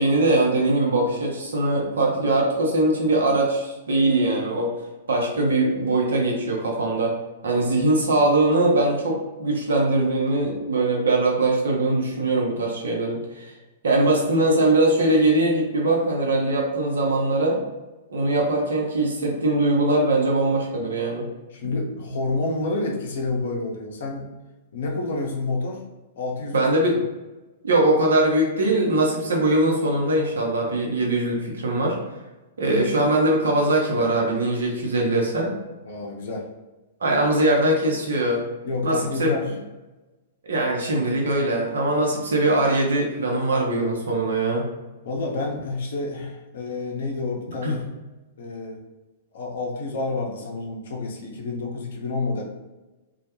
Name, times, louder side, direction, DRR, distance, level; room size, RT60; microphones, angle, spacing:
voice 1, 0.0-4.7 5.1-7.1 7.4-13.5 13.8-17.6 18.1-21.3 26.5-27.0 27.6-32.0 32.6-35.5 37.0-38.4 38.8-39.5 40.5-44.6 47.6-47.8, right 2 dB, 75° right, -1 dB, 0.7 m, -21 dB
voice 2, 21.5-24.3 24.7-25.8 26.2-26.6 35.8-36.5 38.6-39.5 45.0-47.8 48.4-48.8 49.3-52.4, left 3 dB, 65° left, 0 dB, 0.6 m, -29 dB
2.2 x 2.1 x 2.9 m, 1.1 s
figure-of-eight pair, 110°, 0 cm